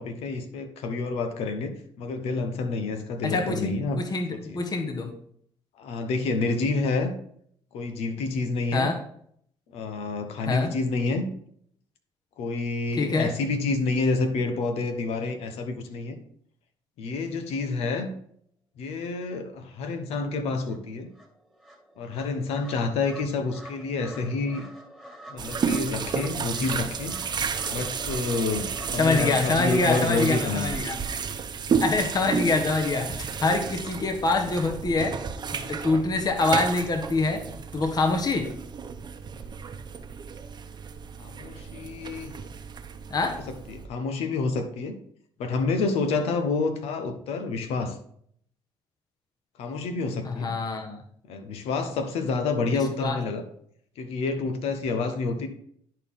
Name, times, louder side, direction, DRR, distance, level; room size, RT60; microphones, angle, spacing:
voice 1, 0.0-4.0 4.3-4.6 5.8-7.1 7.7-8.9 9.7-11.3 12.4-16.2 17.0-18.1 18.8-21.1 22.0-24.6 25.3-27.2 27.7-30.7 41.2-42.3 43.3-44.9 45.4-48.0 49.6-50.5 51.3-53.4 54.0-55.5, left 3 dB, 80° left, 8 dB, 1.2 m, -28 dB
voice 2, 3.2-5.1 8.7-9.0 10.5-10.7 13.0-13.3 29.0-31.0 31.8-35.2 35.5-37.4 37.7-38.5 43.1-43.4 50.2-51.0 53.0-53.2, left 3 dB, 40° left, 4 dB, 1.3 m, -25 dB
sound 1, 20.2-20.3 20.7-30.3, right 1 dB, 5° left, 2.0 m, -45 dB
sound 2, 25.4-43.9, right 6 dB, 45° right, 0.9 m, -32 dB
10.5 x 4.6 x 3.8 m, 0.64 s
supercardioid pair, 80°, 10 cm